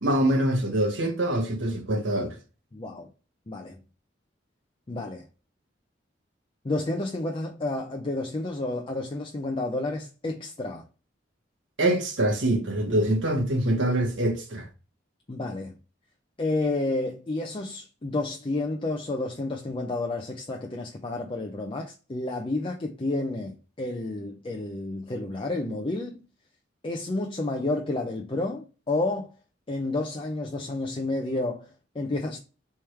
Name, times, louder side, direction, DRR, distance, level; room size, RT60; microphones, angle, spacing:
voice 1, 0.0-2.4 11.8-14.7, right 1 dB, 80° right, 1.1 m, -24 dB
voice 2, 2.7-3.1 3.5-3.8 4.9-5.3 6.6-10.8 15.3-15.7 16.4-26.2 26.8-29.3 29.7-32.4, left 2 dB, 30° left, 0.5 m, -30 dB
3.5 x 3.1 x 4.4 m
head